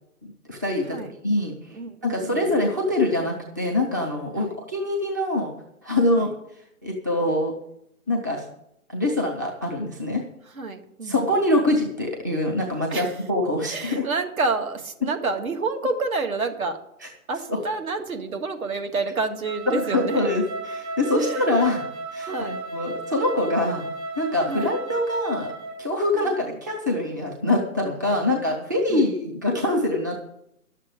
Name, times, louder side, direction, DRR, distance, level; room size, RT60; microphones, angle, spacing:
voice 1, 0.2-1.0 1.2-5.5 5.8-6.3 6.8-7.6 8.1-8.4 8.9-10.2 11.0-14.0 17.0-17.1 17.5-17.6 19.7-21.8 22.1-23.8 24.2-25.5 25.8-30.1, left 1 dB, 15° right, 0 dB, 0.5 m, -24 dB
voice 2, 1.7-2.4 4.4-4.5 6.1-6.3 10.5-11.2 12.9-13.1 13.7-16.8 17.3-20.3 21.1-21.5 22.3-22.6 24.5-24.7 26.1-26.3 28.1-28.3 28.9-29.1, right 3 dB, 65° right, 5 dB, 2.1 m, -28 dB
Wind instrument woodwind instrument, 19.4-25.8, right 2 dB, 45° right, 3.8 m, -34 dB
11.5 x 7.4 x 7.8 m, 0.78 s
hypercardioid pair, 150°, 44 cm